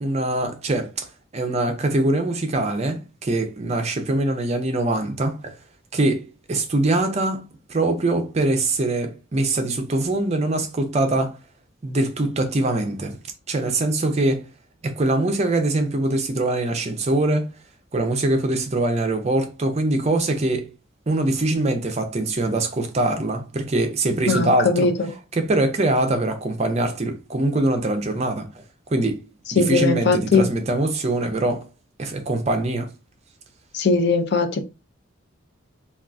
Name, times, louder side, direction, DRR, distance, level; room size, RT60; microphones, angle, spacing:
voice 1, 0.0-5.6 5.9-7.4 7.7-11.4 11.8-13.2 13.5-14.5 14.8-17.5 17.9-20.7 21.1-24.9 25.3-28.6 28.9-29.3 29.5-31.7 32.0-32.9, right 2 dB, 30° right, 0.5 m, -23 dB
voice 2, 24.3-25.1 29.6-30.5 33.7-34.6, left 4 dB, 55° left, 0.5 m, -20 dB
3.5 x 2.3 x 2.5 m
head